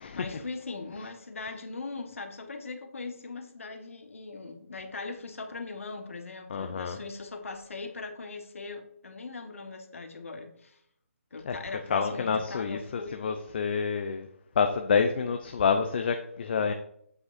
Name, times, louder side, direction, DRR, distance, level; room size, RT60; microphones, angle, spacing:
voice 1, 0.1-10.8 11.3-13.3, left 3 dB, 65° left, 5 dB, 1.5 m, -40 dB
voice 2, 6.5-7.0 11.4-11.6 11.9-14.3 14.6-16.7, left 6 dB, 40° left, 6 dB, 0.7 m, -28 dB
8.1 x 7.9 x 2.6 m, 0.69 s
figure-of-eight pair, 150°, 8 cm